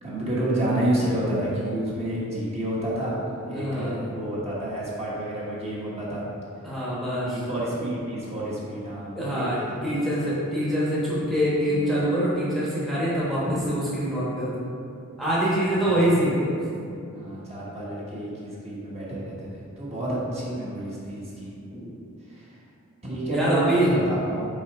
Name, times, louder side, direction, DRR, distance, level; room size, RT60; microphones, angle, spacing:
voice 1, 0.0-6.3 7.2-9.8 11.7-11.8 15.5-16.0 17.1-21.5 22.3-22.5 23.0-24.5, right 1 dB, 30° right, -7 dB, 1.2 m, -29 dB
voice 2, 3.5-4.0 6.6-7.4 9.2-14.6 15.2-16.6 20.1-20.3 21.7-22.0 23.3-23.9, equal, ahead, -9 dB, 1.1 m, -25 dB
5.4 x 4.3 x 4.7 m, 2.6 s
head